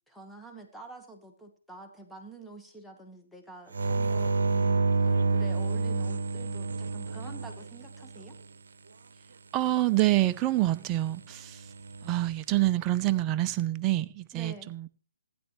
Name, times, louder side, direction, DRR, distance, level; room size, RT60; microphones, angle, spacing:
voice 1, 0.1-8.4 14.3-14.7, right 2 dB, ahead, 2 dB, 1.4 m, -47 dB
sound 1, 3.7-8.4 11.6-12.2, right 3 dB, 60° right, 0.9 m, -28 dB
voice 2, 9.5-11.6 12.0-14.9, right 16 dB, 20° right, 12 dB, 0.5 m, -27 dB
15.5 x 9.9 x 3.2 m, 0.40 s
figure-of-eight pair, 140°, 0 cm